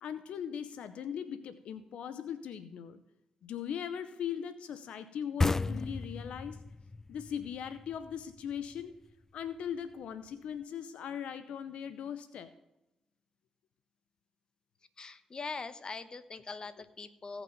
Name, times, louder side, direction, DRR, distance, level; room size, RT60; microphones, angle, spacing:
voice 1, 0.0-3.0 3.4-6.6 7.1-8.9 9.3-12.5, left 8 dB, 80° left, 12 dB, 0.7 m, -39 dB
sound 1, 5.4-8.8, left 3 dB, 20° left, 0.3 m, -34 dB
voice 2, 15.0-17.4, left 4 dB, 40° left, 12 dB, 1.1 m, -42 dB
16.5 x 6.0 x 5.2 m, 0.91 s
supercardioid pair, 55°, 2 cm